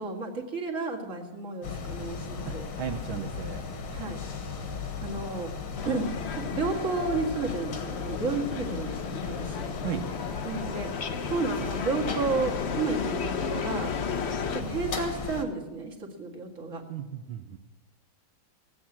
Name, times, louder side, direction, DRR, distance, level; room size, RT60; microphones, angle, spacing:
voice 1, 0.0-2.7 3.9-4.2 5.0-5.5 5.9-9.7 10.4-10.9 11.3-13.9 14.5-16.8, right 3 dB, 40° right, 1 dB, 2.2 m, -32 dB
sound 1, 1.6-15.5, left 5 dB, 85° left, 2.3 m, -36 dB
voice 2, 2.4-3.6 9.8-10.1 16.9-17.6, right 9 dB, 75° right, 4 dB, 1.5 m, -35 dB
sound 2, 5.7-14.6, left 6 dB, 60° left, 0.7 m, -35 dB
18.5 x 8.7 x 7.2 m, 1.1 s
omnidirectional pair, 2.3 m